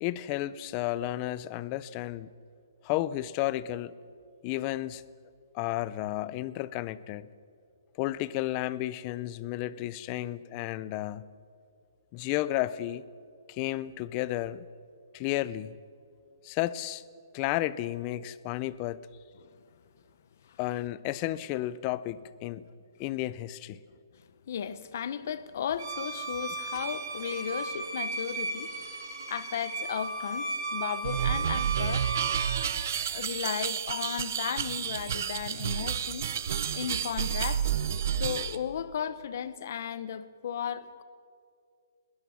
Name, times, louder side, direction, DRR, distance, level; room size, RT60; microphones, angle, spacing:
voice 1, 0.0-2.3 2.8-3.9 4.4-5.0 5.5-7.3 8.0-11.2 12.1-13.0 13.5-14.7 15.1-15.7 16.4-17.0 17.3-19.0 20.6-22.6 23.0-23.8 26.7-26.8, left 15 dB, 20° left, 0.4 m, -32 dB
voice 2, 24.2-28.7 29.3-32.1 33.1-36.3 36.7-37.7 38.2-41.0, left 8 dB, 40° left, 0.8 m, -35 dB
Bowed string instrument, 25.8-32.6, right 3 dB, 65° right, 5.6 m, -35 dB
sound 1, 31.0-38.6, right 8 dB, 45° right, 0.8 m, -30 dB
21.5 x 17.5 x 7.1 m
hypercardioid pair, 175°, 2 cm